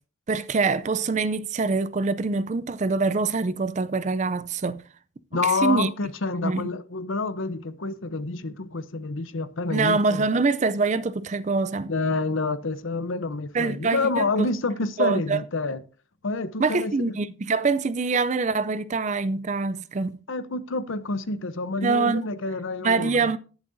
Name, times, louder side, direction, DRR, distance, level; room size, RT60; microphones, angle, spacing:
voice 1, 0.3-4.8 5.3-5.9 6.4-6.6 9.7-11.9 13.5-14.5 15.0-15.4 16.6-20.2 21.8-22.3 22.8-23.4, right 4 dB, 35° right, 0.4 m, -24 dB
voice 2, 5.3-10.2 11.9-15.8 16.2-17.2 20.3-23.3, left 3 dB, 75° left, 0.8 m, -28 dB
19.0 x 7.4 x 2.6 m
head